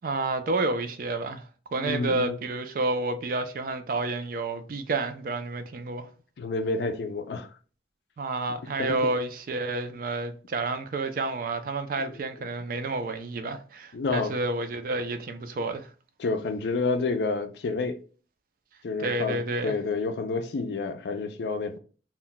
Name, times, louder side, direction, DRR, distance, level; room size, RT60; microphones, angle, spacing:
voice 1, 0.0-1.4 1.7-6.1 8.2-15.9 19.0-19.7, right 2 dB, 50° right, 0.4 m, -30 dB
voice 2, 1.8-2.4 6.4-7.5 8.8-9.1 12.0-12.5 13.9-14.4 16.2-18.0 18.8-21.8, left 3 dB, 70° left, 0.4 m, -29 dB
2.2 x 2.1 x 3.8 m
head